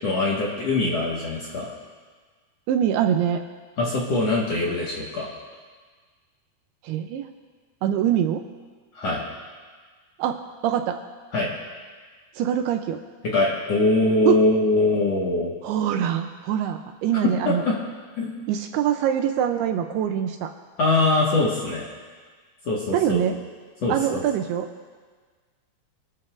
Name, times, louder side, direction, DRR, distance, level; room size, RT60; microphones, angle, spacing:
voice 1, 0.0-1.7 3.8-5.3 8.9-9.2 11.3-11.5 13.3-15.5 17.5-17.7 18.2-18.3 20.8-21.9 22.6-23.2 23.8-24.2, left 2 dB, 55° left, -5 dB, 2.1 m, -22 dB
voice 2, 2.7-3.4 6.8-7.3 7.8-8.4 10.2-11.0 12.4-13.0 14.3-14.4 15.6-17.6 18.5-20.5 22.9-23.4 23.9-24.7, right 9 dB, 80° right, 5 dB, 2.5 m, -24 dB
26.5 x 13.0 x 2.5 m, 1.5 s
omnidirectional pair, 4.9 m